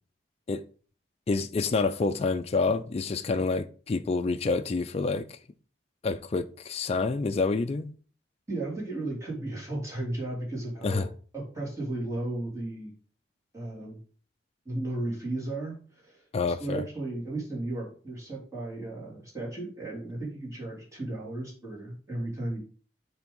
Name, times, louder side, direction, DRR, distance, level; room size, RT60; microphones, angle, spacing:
voice 1, 1.3-5.4 6.0-7.9 10.8-11.1 16.3-16.8, left 3 dB, 35° left, 0.4 m, -28 dB
voice 2, 8.5-11.1 11.3-12.9 13.5-14.0 14.6-22.6, right 2 dB, 20° right, 2.9 m, -35 dB
7.3 x 3.5 x 5.3 m
head